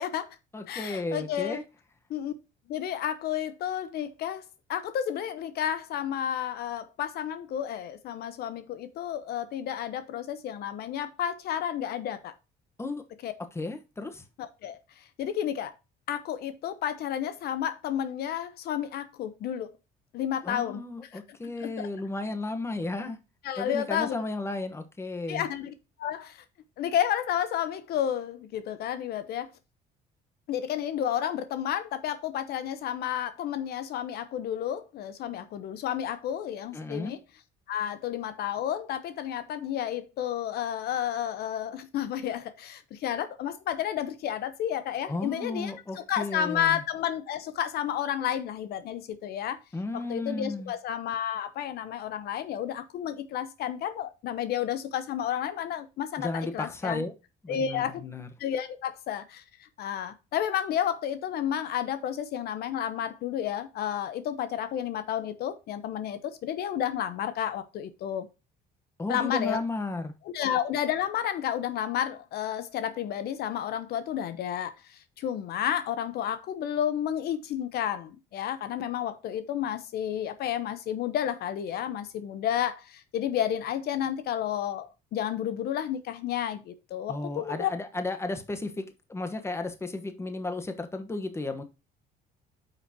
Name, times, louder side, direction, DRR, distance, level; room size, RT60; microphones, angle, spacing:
voice 1, 0.0-0.4 0.7-1.6 2.1-2.3 2.7-12.3 13.2-13.3 14.4-15.7 16.1-19.7 20.1-20.8 21.1-21.2 21.6-21.9 23.4-24.2 25.3-25.7 26.0-26.4 26.8-29.5 30.5-37.2 37.7-49.6 50.1-57.0 57.5-58.0 58.4-68.3 69.1-69.6 70.3-87.7, left 10 dB, 70° left, 0.9 m, -31 dB
voice 2, 0.5-1.6 12.8-13.0 13.5-14.2 20.4-23.2 23.6-25.4 36.7-37.1 45.1-46.8 49.7-50.7 56.2-57.2 57.4-58.3 69.0-70.1 87.1-88.8 89.1-91.6, left 2 dB, 15° left, 1.2 m, -34 dB
9.1 x 6.0 x 2.9 m
cardioid pair, 110°, 17 cm